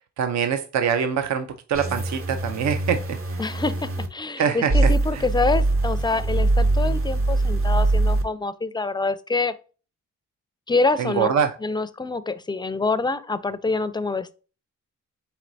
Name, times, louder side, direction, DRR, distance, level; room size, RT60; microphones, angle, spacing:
voice 1, 0.2-3.0 4.4-5.2 11.0-11.5, right 7 dB, 60° right, 0.5 m, -24 dB
sound 1, 1.7-4.1 4.7-8.2, right 2 dB, 45° right, 0.9 m, -22 dB
voice 2, 3.4-9.5 10.7-11.3 11.6-14.3, left 3 dB, 15° left, 0.4 m, -26 dB
4.3 x 3.9 x 2.6 m
supercardioid pair, 55°, 32 cm